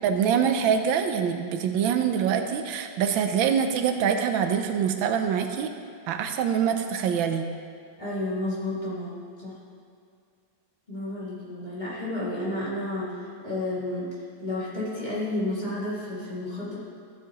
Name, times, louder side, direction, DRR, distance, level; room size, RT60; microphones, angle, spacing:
voice 1, 0.0-5.7 6.1-7.5, right 7 dB, 85° right, 6 dB, 1.4 m, -24 dB
voice 2, 8.0-9.6 10.9-13.2 13.4-16.8, left 1 dB, 25° left, -9 dB, 2.3 m, -31 dB
14.0 x 7.4 x 3.0 m, 2.4 s
omnidirectional pair, 2.1 m